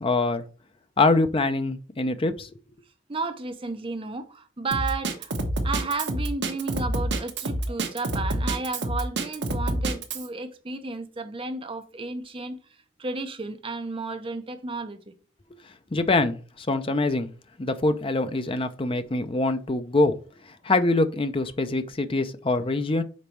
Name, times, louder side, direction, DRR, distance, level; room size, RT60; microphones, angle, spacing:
voice 1, 0.0-0.4 1.0-2.5 15.9-17.3 17.6-20.1 20.6-23.0, left 2 dB, 30° left, 0.5 m, -24 dB
voice 2, 3.1-5.3 5.6-12.6 13.0-15.1, right 3 dB, 25° right, 0.7 m, -33 dB
Drum kit, 4.7-10.3, right 1 dB, 60° right, 1.0 m, -27 dB
5.3 x 4.0 x 4.5 m
head